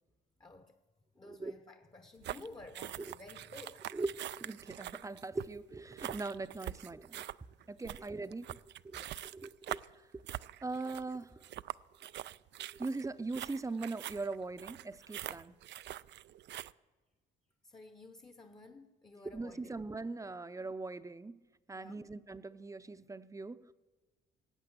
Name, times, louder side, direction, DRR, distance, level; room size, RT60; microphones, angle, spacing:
voice 1, 0.4-0.7 1.1-3.9 7.8-8.0 8.9-9.2 17.6-19.7 21.7-22.1, left 2 dB, 20° left, 0.9 m, -53 dB
voice 2, 1.2-1.5 3.1-3.2 3.9-7.2 7.7-9.0 9.3-9.8 10.6-11.4 12.8-15.5 19.3-21.4 21.7-23.6, right 3 dB, 15° right, 0.6 m, -40 dB
sound 1, 2.2-16.7, right 13 dB, 60° right, 0.4 m, -44 dB
17.5 x 8.2 x 7.9 m
cardioid pair, 90°, 20 cm